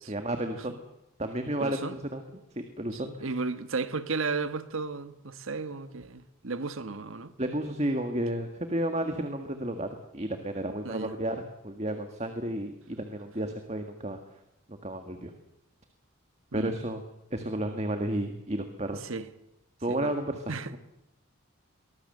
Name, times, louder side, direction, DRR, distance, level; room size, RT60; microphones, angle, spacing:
voice 1, 0.1-0.8 1.2-2.2 2.6-3.4 7.4-14.2 14.7-15.3 16.5-17.0 17.3-19.0 19.8-20.8, right 1 dB, 30° right, 1.8 m, -32 dB
voice 2, 1.6-2.0 2.9-7.3 10.8-11.1 16.5-16.7 18.9-19.3 19.9-20.1 20.5-20.7, right 4 dB, 70° right, 1.4 m, -34 dB
24.0 x 19.5 x 7.9 m
head